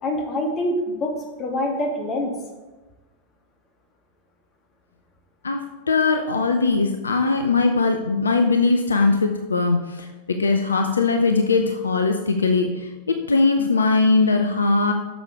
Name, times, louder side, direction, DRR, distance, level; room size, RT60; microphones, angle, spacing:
voice 1, 0.0-2.3, left 1 dB, 30° left, 2 dB, 1.9 m, -25 dB
voice 2, 5.9-14.9, left 3 dB, 75° left, 5 dB, 0.6 m, -20 dB
9.0 x 6.6 x 4.8 m, 1.2 s
figure-of-eight pair, 90°, 0 cm